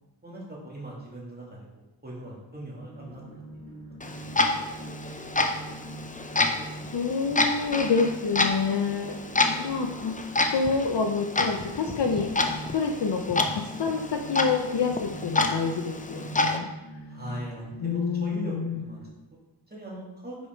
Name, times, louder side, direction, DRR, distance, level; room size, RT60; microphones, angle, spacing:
voice 1, 0.2-3.2 4.1-4.3 17.1-19.0 19.7-20.4, right 1 dB, 20° right, -5 dB, 2.3 m, -40 dB
sound 1, 2.8-19.1, right 1 dB, 45° right, 2.4 m, -43 dB
Clock, 4.0-16.6, left 2 dB, 20° left, 0.5 m, -29 dB
voice 2, 6.9-9.1 9.4-10.2 10.5-12.3 12.7-16.7 17.8-18.8, left 5 dB, 65° left, 4 dB, 0.6 m, -27 dB
5.4 x 4.9 x 4.4 m, 0.99 s
wide cardioid pair, 60°, 44 cm